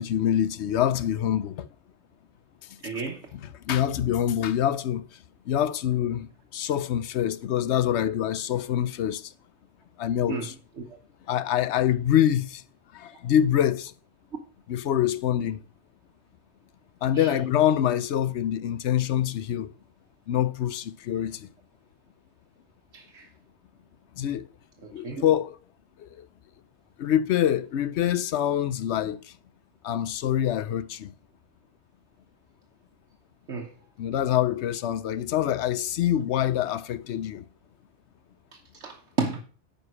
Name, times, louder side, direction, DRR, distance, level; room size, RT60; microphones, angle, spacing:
voice 1, 0.0-1.7 2.9-3.0 3.3-5.1 5.5-9.3 10.0-10.5 11.3-12.6 12.9-13.9 14.7-15.6 17.0-19.7 20.3-21.5 24.2-24.5 24.9-25.6 26.0-26.3 27.0-29.2 29.8-31.1 34.0-37.4, left 10 dB, 80° left, 0.9 m, -25 dB
voice 2, 2.8-3.2 10.3-10.5 17.1-17.3 22.9-23.3 25.0-25.2 33.5-33.7 38.8-39.4, right 4 dB, 75° right, 1.3 m, -31 dB
9.7 x 5.2 x 6.1 m
omnidirectional pair, 1.2 m